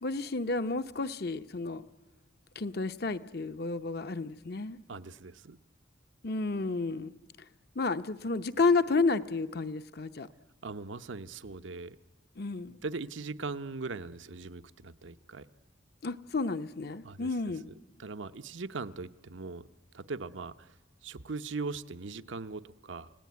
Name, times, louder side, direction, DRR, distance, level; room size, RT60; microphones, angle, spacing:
voice 1, 0.0-1.8 2.6-4.8 6.2-7.1 7.8-10.3 12.4-12.8 16.0-17.7, left 3 dB, 55° left, 11 dB, 0.8 m, -31 dB
voice 2, 4.9-5.6 10.6-12.0 12.7-15.5 17.0-17.3 17.7-19.7 19.9-20.7 21.0-23.1, right 3 dB, 75° right, 11 dB, 0.8 m, -40 dB
29.0 x 17.5 x 9.5 m, 1.2 s
head